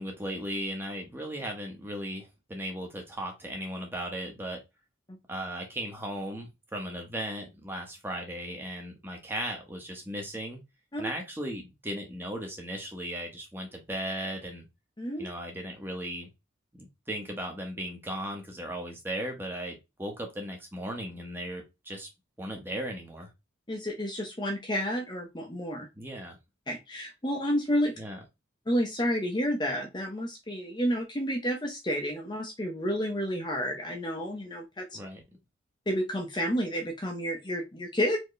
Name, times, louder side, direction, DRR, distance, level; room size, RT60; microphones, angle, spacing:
voice 1, 0.0-4.6 5.3-10.6 11.0-14.6 15.2-16.3 16.7-22.1 22.4-23.3 26.0-26.4 28.0-28.2 34.9-35.2, right 1 dB, 10° right, 2 dB, 1.0 m, -36 dB
voice 2, 15.0-15.3 23.7-25.9 26.7-27.9 28.7-34.9 35.9-38.2, equal, 20° left, 2 dB, 0.7 m, -30 dB
4.4 x 2.9 x 3.1 m, 0.23 s
head